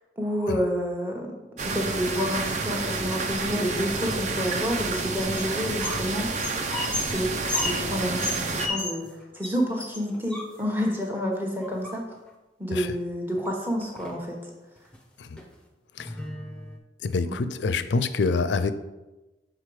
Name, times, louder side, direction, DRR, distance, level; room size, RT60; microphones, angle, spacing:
voice 1, 0.2-1.3 1.6-6.6 6.9-9.0 9.3-12.0 12.6-14.4 17.2-17.4, equal, 10° right, -1 dB, 1.0 m, -29 dB
sound 1, 1.6-8.7, right 3 dB, 40° right, 0.5 m, -29 dB
sound 2, 4.9-6.1 6.3-9.1 9.4-9.5 9.8-10.9 11.6-12.3 13.4-13.5 13.8-14.3 14.8-15.0 15.4-15.5 16.0-16.8, left 2 dB, 5° left, 0.6 m, -33 dB
voice 2, 17.0-18.7, left 4 dB, 75° left, 12 dB, 0.4 m, -26 dB
6.5 x 3.8 x 4.8 m, 1.1 s
head